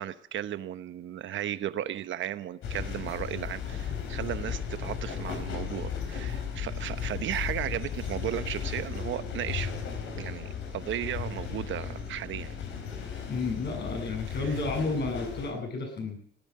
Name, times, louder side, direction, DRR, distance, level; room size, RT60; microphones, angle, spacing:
voice 1, 0.0-9.7 10.2-12.6 14.4-14.6, right 11 dB, 75° right, 12 dB, 1.0 m, -35 dB
sound 1, 2.6-15.5, left 7 dB, 85° left, 3.7 m, -35 dB
voice 2, 13.3-16.2, left 3 dB, 60° left, 2 dB, 7.8 m, -31 dB
18.5 x 9.8 x 7.7 m, 0.62 s
cardioid pair, 90°, 20 cm